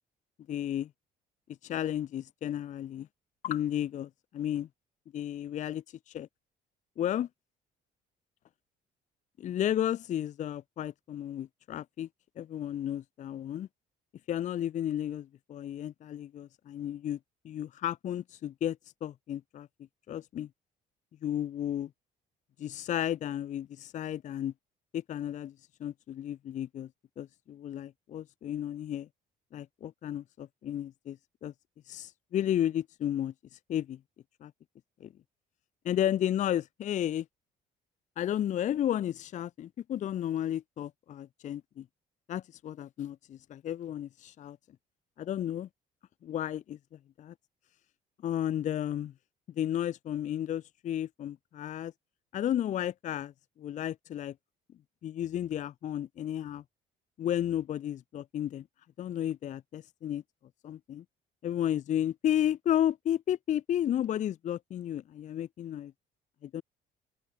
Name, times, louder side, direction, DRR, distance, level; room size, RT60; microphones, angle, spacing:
voice 1, 0.5-0.9 1.6-3.1 3.4-4.7 5.1-6.3 7.0-7.3 9.4-12.1 12.4-13.7 14.3-17.2 17.4-19.7 20.1-20.5 21.2-21.9 22.6-24.5 24.9-25.5 25.8-26.9 27.2-29.1 29.5-31.5 31.9-33.3 33.7-34.0 34.4-34.5 35.0-35.1 35.8-37.3 38.2-41.8 42.3-44.6 45.2-45.7 46.2-46.8 47.2-47.3 48.2-49.1 49.6-51.9 52.3-53.3 53.6-54.3 55.0-56.6 57.2-58.6 59.0-60.2 60.6-61.0 61.4-65.9 66.4-66.6, left 11 dB, 45° left, 0.5 m, -33 dB
open air
cardioid pair, 110°, 17 cm